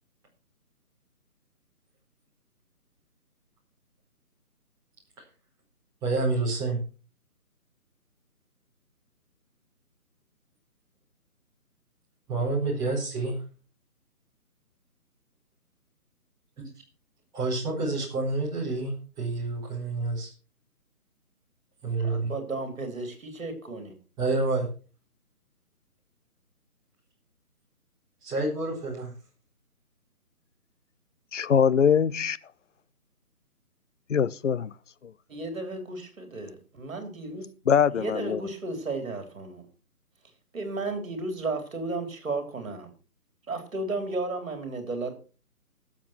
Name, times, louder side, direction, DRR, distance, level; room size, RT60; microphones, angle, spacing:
voice 1, 6.0-6.8 12.3-13.4 16.6-16.7 17.3-18.9 19.2-20.3 21.8-22.3 24.2-24.7 28.2-29.1, right 3 dB, 10° right, 4.2 m, -28 dB
voice 2, 22.0-23.9 35.3-37.5 37.9-39.6 40.5-42.9 43.5-45.1, right 3 dB, 60° right, 3.9 m, -33 dB
voice 3, 31.3-32.4 34.1-34.7 37.7-38.4, left 7 dB, 55° left, 0.7 m, -22 dB
14.0 x 7.5 x 5.9 m
hypercardioid pair, 165°, 45 cm